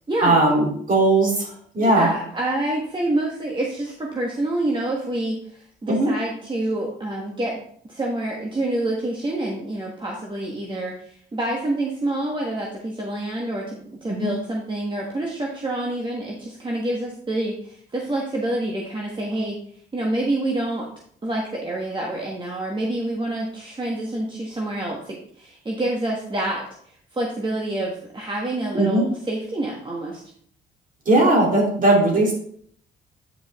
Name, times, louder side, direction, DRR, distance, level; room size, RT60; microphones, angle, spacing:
voice 1, 0.2-2.1 5.9-6.1 14.1-14.3 28.7-29.0 31.1-32.3, right 2 dB, 45° right, -2 dB, 3.2 m, -18 dB
voice 2, 1.8-7.6 7.9-19.6 19.9-20.9 21.2-30.2, right 1 dB, 25° right, -2 dB, 1.4 m, -27 dB
9.3 x 5.1 x 3.6 m, 0.62 s
cardioid pair, 90°, 20 cm